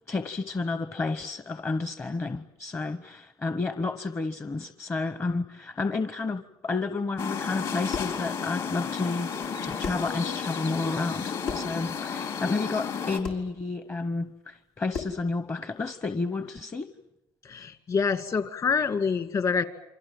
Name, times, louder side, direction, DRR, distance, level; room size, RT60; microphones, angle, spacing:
voice 1, 0.1-16.9, left 3 dB, 30° left, 11 dB, 0.9 m, -31 dB
sound 1, 7.2-13.2, left 6 dB, 60° left, 4.0 m, -33 dB
sound 2, 7.9-8.2 9.4-9.5 9.8-10.1 11.4-11.8 13.2-13.5 14.9-15.3, left 5 dB, 85° left, 3.1 m, -35 dB
voice 2, 17.4-19.6, left 5 dB, 45° left, 10 dB, 2.3 m, -26 dB
29.0 x 24.0 x 7.6 m, 0.88 s
supercardioid pair, 85°, 9 cm